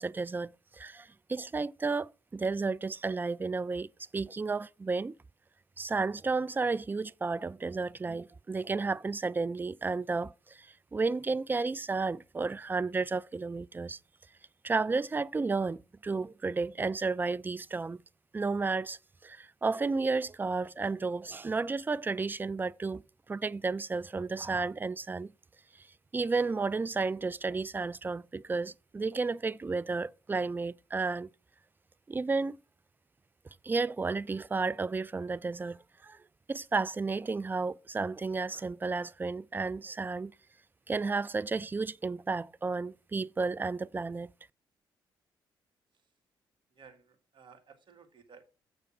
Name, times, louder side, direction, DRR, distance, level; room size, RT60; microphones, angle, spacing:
voice 1, 0.0-5.2 5.8-14.0 14.6-18.0 18.3-23.0 23.3-25.3 25.8-25.9 26.1-31.3 32.1-32.6 33.6-36.2 36.5-40.3 40.9-44.3, right 4 dB, 20° right, 0.3 m, -32 dB
voice 2, 46.8-48.4, right 6 dB, 50° right, 1.5 m, -56 dB
6.9 x 6.7 x 4.8 m
hypercardioid pair, 45°, 11 cm